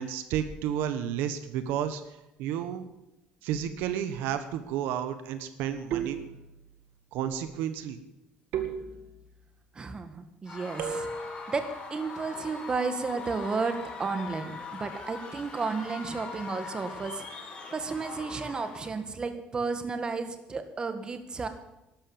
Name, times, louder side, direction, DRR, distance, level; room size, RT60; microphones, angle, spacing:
voice 1, 0.0-2.0 2.4-2.9 3.4-6.2 7.1-8.0, right 9 dB, 85° right, 10 dB, 1.3 m, -31 dB
sound 1, 3.5-4.1 5.9-6.8 8.5-9.5 10.8-11.5, right 7 dB, 70° right, 2.1 m, -36 dB
voice 2, 9.7-11.6 11.9-21.5, right 4 dB, 25° right, 8 dB, 1.7 m, -33 dB
Screaming / Cheering / Crowd, 10.5-19.0, left 4 dB, 30° left, 4.2 m, -41 dB
12.0 x 12.0 x 7.2 m, 0.92 s
cardioid pair, 125°, 3 cm